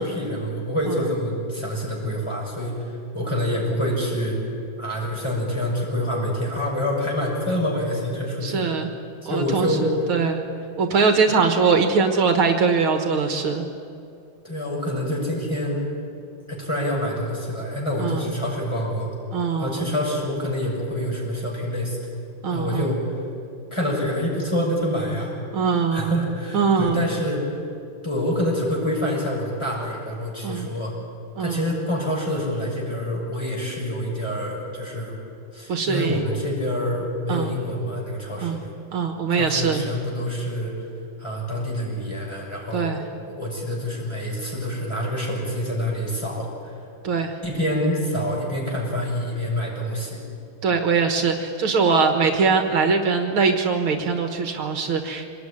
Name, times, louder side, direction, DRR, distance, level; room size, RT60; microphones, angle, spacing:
voice 1, 0.0-4.4 4.8-8.6 9.3-10.1 11.3-11.4 14.4-15.8 16.5-19.1 19.6-22.0 22.5-23.1 23.7-25.3 25.9-27.5 28.0-31.0 31.4-35.2 35.5-38.7 39.3-40.7 41.2-46.8 47.4-50.2, equal, 10° left, -3 dB, 6.5 m, -26 dB
voice 2, 8.4-8.9 9.3-9.7 10.1-10.4 10.8-13.7 18.0-18.3 19.3-19.8 22.4-22.9 25.5-26.2 26.5-27.0 30.4-30.7 31.4-31.7 35.7-36.2 37.3-37.5 38.4-38.6 38.9-39.8 42.7-43.0 47.0-47.3 50.6-55.3, right 5 dB, 70° right, 5 dB, 2.3 m, -22 dB
24.5 x 19.5 x 9.9 m, 2.5 s
omnidirectional pair, 2.4 m